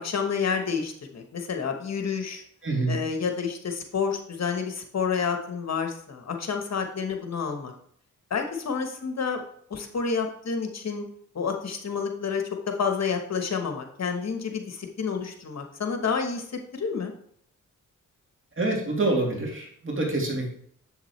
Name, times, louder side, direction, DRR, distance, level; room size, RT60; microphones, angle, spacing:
voice 1, 0.0-2.4 2.9-7.7 8.3-9.4 9.7-11.0 11.3-16.4 16.7-17.1, left 5 dB, 55° left, 5 dB, 1.1 m, -29 dB
voice 2, 2.6-3.0 18.6-20.5, right 2 dB, 40° right, -2 dB, 2.7 m, -26 dB
7.3 x 7.3 x 3.2 m, 0.65 s
cardioid pair, 80°, 31 cm